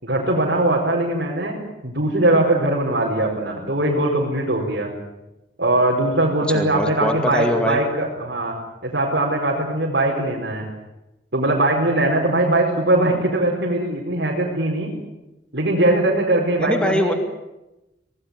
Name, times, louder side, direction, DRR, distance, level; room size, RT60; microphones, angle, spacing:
voice 1, 0.0-4.9 5.6-8.6 8.8-10.7 11.3-15.0 15.5-17.2, right 1 dB, 60° right, -3 dB, 5.0 m, -21 dB
voice 2, 6.5-7.8 16.6-17.1, equal, 5° left, 5 dB, 2.2 m, -22 dB
26.0 x 18.0 x 9.7 m, 0.98 s
head